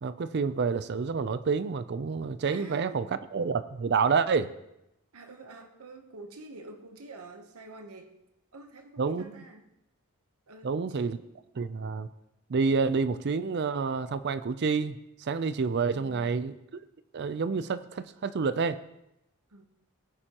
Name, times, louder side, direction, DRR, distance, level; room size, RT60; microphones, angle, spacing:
voice 1, 0.0-3.1 3.3-4.5 9.0-9.4 10.6-11.2 11.6-12.1 12.5-16.8 17.1-18.8, right 5 dB, 50° right, 13 dB, 0.4 m, -28 dB
voice 2, 2.4-3.0 5.1-8.2 8.5-9.6 10.5-11.3 19.5-19.7, right 2 dB, 80° right, 6 dB, 1.0 m, -47 dB
18.5 x 9.8 x 2.9 m, 0.86 s
head